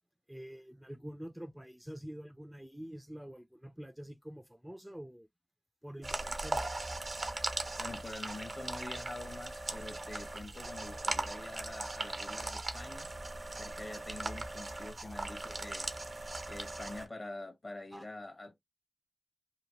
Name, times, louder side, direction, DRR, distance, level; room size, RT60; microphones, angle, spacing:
voice 1, 0.3-5.3 5.8-6.7 10.9-11.1 15.0-15.1 17.9-18.0, equal, 10° right, 0.4 m, -47 dB
sound 1, 6.0-17.0, right 2 dB, 60° right, 0.6 m, -39 dB
voice 2, 7.8-13.1 13.6-15.9 16.5-18.6, left 2 dB, 50° left, 1.0 m, -46 dB
2.9 x 2.0 x 2.9 m
cardioid pair, 40°, 0 cm